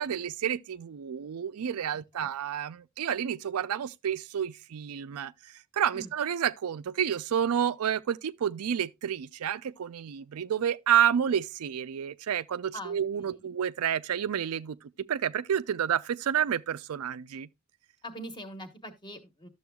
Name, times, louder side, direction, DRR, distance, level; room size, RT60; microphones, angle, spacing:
voice 1, 0.0-17.5, right 9 dB, 90° right, 0.4 m, -30 dB
voice 2, 12.7-13.5 18.0-19.5, equal, 20° left, 1.2 m, -43 dB
12.5 x 7.0 x 2.3 m
head